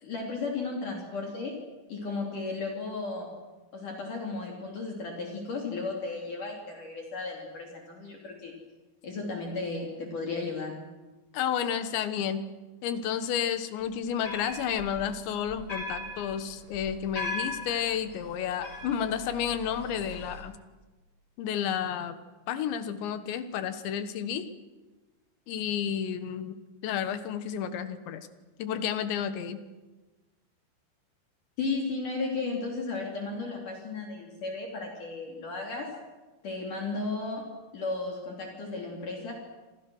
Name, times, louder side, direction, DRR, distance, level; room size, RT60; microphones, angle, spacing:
voice 1, 0.0-1.6 1.9-3.3 3.7-8.5 9.0-10.8 31.6-35.9 36.4-37.5 37.7-39.3, left 3 dB, 45° left, 0 dB, 4.3 m, -34 dB
voice 2, 11.3-12.5 12.8-20.6 21.4-22.2 22.5-24.5 25.5-26.6 26.8-28.3 28.6-29.6, left 8 dB, 80° left, 10 dB, 3.5 m, -31 dB
sound 1, 13.9-20.4, left 2 dB, 30° left, 4.9 m, -40 dB
27.5 x 27.0 x 6.3 m, 1.2 s
omnidirectional pair, 5.2 m